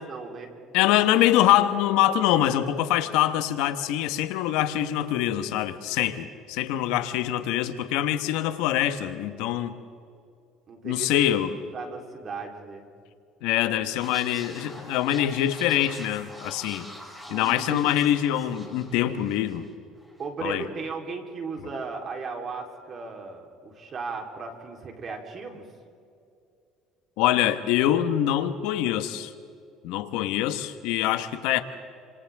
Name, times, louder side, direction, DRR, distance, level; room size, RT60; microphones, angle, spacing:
voice 1, 0.1-0.5 10.7-12.9 17.3-17.9 20.2-25.7, right 4 dB, 40° right, 2 dB, 3.8 m, -36 dB
voice 2, 0.7-9.7 10.8-11.6 13.4-16.8 17.3-19.7 20.4-20.6 27.2-29.3 29.8-31.6, left 12 dB, 80° left, 9 dB, 1.3 m, -24 dB
sound 1, 14.0-19.7 20.0-20.2, equal, 5° right, 4.8 m, -44 dB
29.0 x 27.0 x 3.6 m, 2.5 s
cardioid pair, 115°, 0 cm